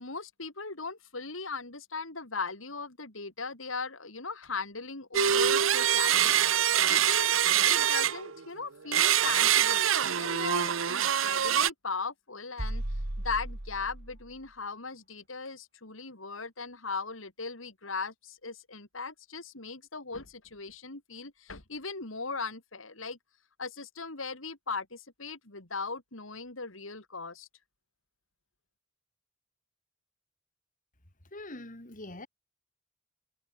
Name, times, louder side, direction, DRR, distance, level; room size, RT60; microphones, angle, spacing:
voice 1, 0.0-6.5 6.9-12.8 13.2-23.2 23.6-27.5, left 4 dB, 80° left, 3.9 m, -38 dB
sound 1, 5.1-8.4 8.9-11.7, right 10 dB, 85° right, 0.9 m, -25 dB
sound 2, 12.6-14.4, right 1 dB, 55° right, 2.3 m, -36 dB
voice 2, 31.3-32.3, left 2 dB, 40° left, 3.9 m, -43 dB
head